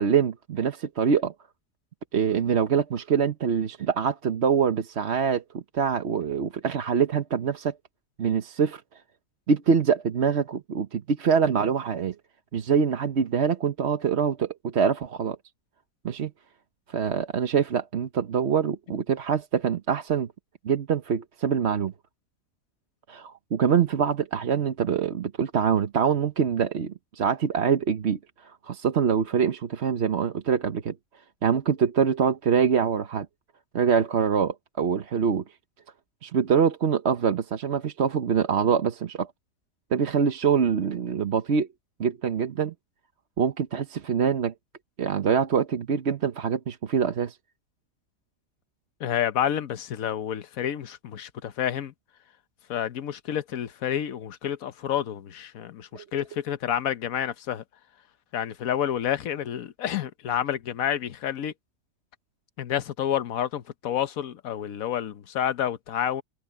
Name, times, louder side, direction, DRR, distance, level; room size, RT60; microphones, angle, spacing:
voice 1, 0.0-1.3 2.1-7.7 8.2-8.8 9.5-12.1 12.5-15.4 16.0-16.3 16.9-20.3 20.6-21.9 23.1-30.9 31.4-33.3 33.7-35.4 36.2-39.3 39.9-41.7 42.0-42.7 43.4-44.5 45.0-47.4 55.9-56.0, right 7 dB, 55° right, 1.2 m, -24 dB
voice 2, 49.0-51.9 52.7-57.6 58.3-61.5 62.6-66.2, left 10 dB, 80° left, 1.3 m, -29 dB
omnidirectional pair, 1.4 m